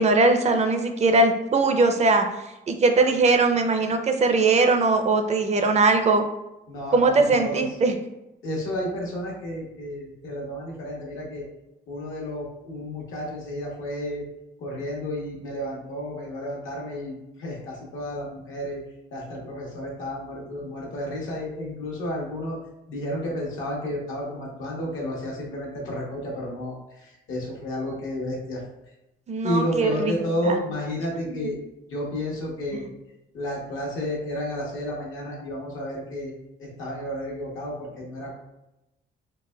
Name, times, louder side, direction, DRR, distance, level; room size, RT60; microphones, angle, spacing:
voice 1, 0.0-2.3 2.7-6.2 6.9-8.0 29.3-30.1 30.4-30.6, right 3 dB, 35° right, 5 dB, 0.4 m, -20 dB
voice 2, 6.7-7.6 8.4-11.5 11.9-14.2 14.6-18.8 19.1-22.6 22.9-28.6 29.4-31.6 31.9-32.9 33.3-36.3 36.6-38.3, left 1 dB, 80° left, -3 dB, 1.0 m, -31 dB
4.0 x 2.1 x 2.2 m, 0.94 s
cardioid pair, 90°, 20 cm